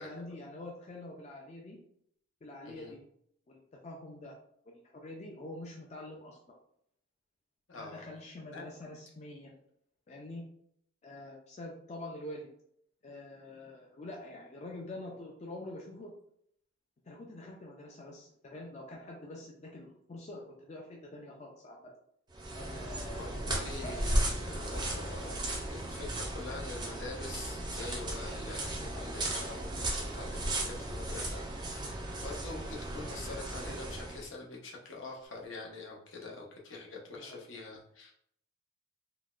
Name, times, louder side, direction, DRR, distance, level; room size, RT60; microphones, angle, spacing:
voice 1, 0.0-1.8 2.4-3.0 3.5-4.3 4.9-6.4 7.8-9.6 10.1-10.4 11.0-12.5 13.0-16.1 17.1-21.9 22.5-23.5 23.8-24.4 37.1-37.4, left 1 dB, 35° left, -1 dB, 0.4 m, -46 dB
voice 2, 2.6-3.0 7.7-8.1 8.5-8.7 23.2-38.1, left 3 dB, 70° left, -1 dB, 0.7 m, -45 dB
sound 1, 22.3-34.2, right 1 dB, 20° right, 0.5 m, -36 dB
3.8 x 2.1 x 2.4 m, 0.70 s
head